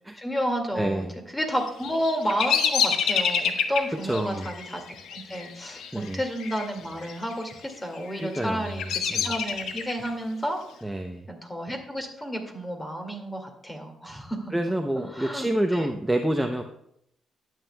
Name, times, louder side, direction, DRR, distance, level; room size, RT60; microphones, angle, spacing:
voice 1, 0.2-4.8 5.1-10.6 11.3-14.7 15.1-15.9, equal, 15° left, 3 dB, 2.1 m, -31 dB
Bird vocalization bird call bird song, 1.6-6.7 6.9-7.5 8.1-10.1, left 7 dB, 75° left, 0.9 m, -28 dB
voice 2, 4.1-4.4 5.9-6.2 8.2-8.6 9.1-9.3 10.8-11.2 14.5-16.6, right 1 dB, 5° right, 4 dB, 0.6 m, -27 dB
12.0 x 9.0 x 2.3 m, 0.74 s
cardioid pair, 90°, 0 cm